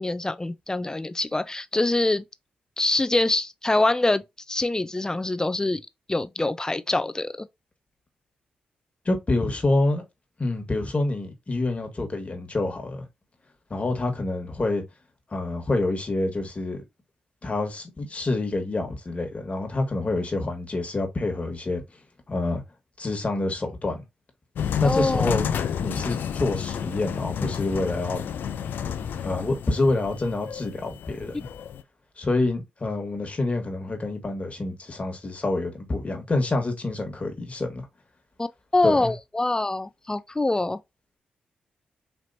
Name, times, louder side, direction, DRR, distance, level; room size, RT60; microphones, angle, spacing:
voice 1, 0.0-2.2 2.8-4.2 4.5-7.5 24.8-25.3 38.4-40.8, left 2 dB, 20° left, 0.5 m, -25 dB
voice 2, 9.0-10.0 10.4-13.0 13.7-14.8 15.3-16.8 17.4-21.8 22.3-22.6 23.0-24.0 24.8-25.5 25.8-28.2 29.2-31.5 32.2-37.9 38.8-39.1, left 2 dB, 40° left, 1.6 m, -27 dB
sound 1, 24.6-31.8, left 8 dB, 70° left, 0.4 m, -30 dB
4.5 x 2.9 x 2.7 m
supercardioid pair, 40°, 3 cm